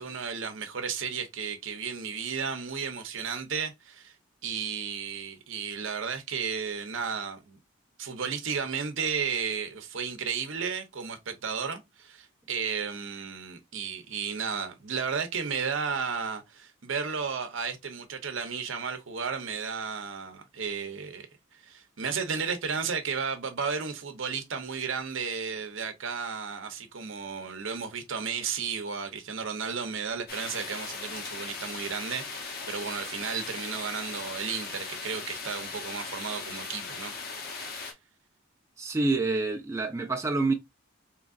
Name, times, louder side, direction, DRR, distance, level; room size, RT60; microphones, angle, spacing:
voice 1, 0.0-4.1 4.4-7.6 8.0-21.3 21.6-37.1 37.4-37.9, right 6 dB, 70° right, 0.7 m, -33 dB
sound 1, 30.3-37.9, left 4 dB, 50° left, 0.8 m, -38 dB
voice 2, 38.8-40.5, right 3 dB, 15° right, 0.4 m, -27 dB
3.7 x 3.0 x 2.4 m
head